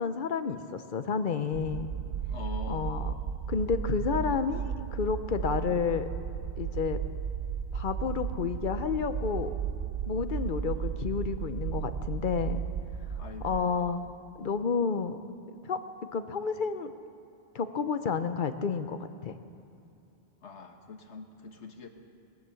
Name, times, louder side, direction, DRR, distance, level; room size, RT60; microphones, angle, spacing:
voice 1, 0.0-1.9 2.7-3.1 3.5-6.1 6.6-7.0 7.7-9.5 10.1-12.6 13.4-14.1 14.4-15.2 15.5-15.8 16.1-16.9 17.5-19.3, left 5 dB, 50° left, 10 dB, 0.8 m, -30 dB
sound 1, 1.5-13.6, right 8 dB, 65° right, 0.8 m, -34 dB
voice 2, 2.3-2.9 13.2-13.9 20.4-21.9, left 4 dB, 80° left, 4 dB, 1.5 m, -43 dB
18.0 x 10.5 x 7.0 m, 2.8 s
omnidirectional pair, 1.1 m